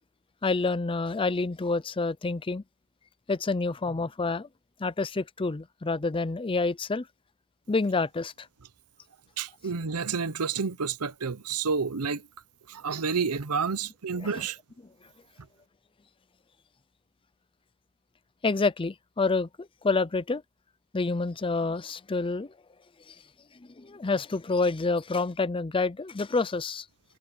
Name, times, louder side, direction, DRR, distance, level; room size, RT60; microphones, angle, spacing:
voice 1, 0.4-2.6 3.3-4.5 4.8-7.1 7.7-8.5 14.3-14.5 18.4-20.4 20.9-22.5 23.1-23.2 23.8-26.9, left 3 dB, 25° left, 0.5 m, -28 dB
voice 2, 9.4-12.3 12.7-14.6, right 5 dB, 90° right, 0.8 m, -30 dB
head